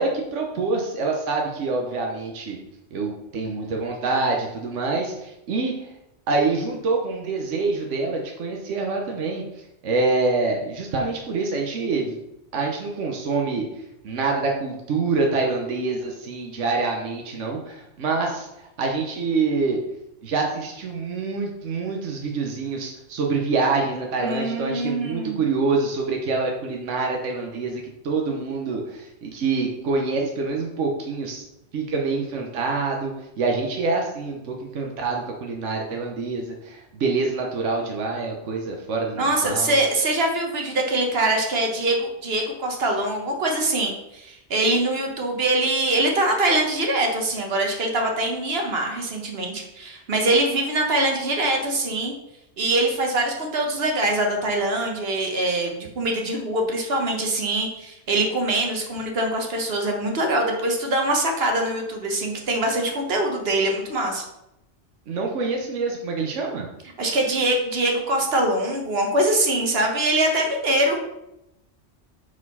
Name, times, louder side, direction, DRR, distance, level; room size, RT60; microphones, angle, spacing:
voice 1, 0.0-2.6 2.9-5.9 6.3-9.4 9.8-12.2 12.5-13.7 14.0-19.8 20.2-31.4 31.7-39.8 65.1-66.7, right 3 dB, 80° right, 1 dB, 1.2 m, -26 dB
voice 2, 24.2-25.4 39.2-52.1 52.6-64.2 67.0-71.0, right 1 dB, 55° right, 2 dB, 1.4 m, -23 dB
5.0 x 4.2 x 5.4 m, 0.86 s
omnidirectional pair, 1.2 m